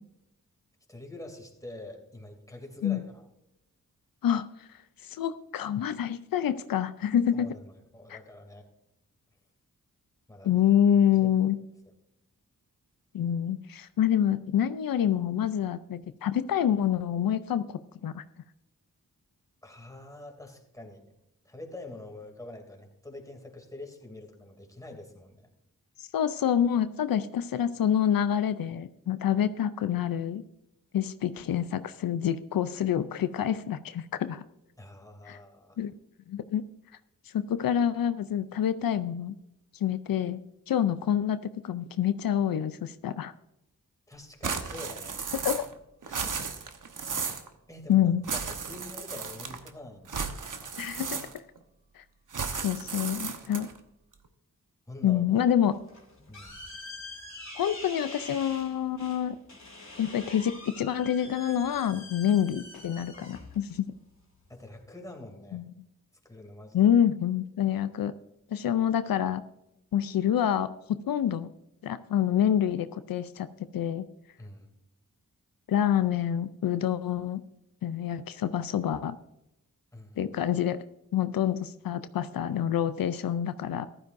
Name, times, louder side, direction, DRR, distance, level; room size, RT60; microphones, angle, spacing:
voice 1, 0.9-3.3 7.3-8.7 10.3-10.6 11.1-11.3 19.6-21.0 21.4-25.5 34.8-35.8 44.1-45.2 46.1-46.5 47.7-48.1 48.4-50.7 53.5-53.6 54.9-55.5 56.3-56.5 64.5-65.6 66.2-66.8 74.4-74.7 79.9-80.2, left 1 dB, 10° left, 2 dB, 2.7 m, -45 dB
voice 2, 4.2-4.7 5.0-7.5 8.1-8.2 10.4-11.6 13.1-17.6 18.0-18.2 26.0-30.4 30.9-34.4 35.3-35.4 35.8-35.9 36.3-36.6 37.3-39.3 39.8-40.4 40.7-43.3 45.4-45.7 47.9-48.2 50.8-51.2 52.0-52.1 52.6-53.7 55.0-55.7 57.6-59.4 60.0-63.8 65.5-65.6 66.7-68.1 68.5-69.4 69.9-71.5 71.8-73.5 73.7-74.1 75.7-77.4 77.8-79.2 80.2-80.8 81.1-83.9, left 9 dB, 85° left, 13 dB, 0.5 m, -27 dB
sound 1, 44.4-45.8 46.0-47.5 48.2-49.7 50.1-51.6 52.3-53.8, right 5 dB, 65° right, 1.1 m, -34 dB
sound 2, 55.7-64.8, left 2 dB, 55° left, 2.9 m, -45 dB
14.5 x 12.0 x 2.6 m, 0.84 s
cardioid pair, 60°, 34 cm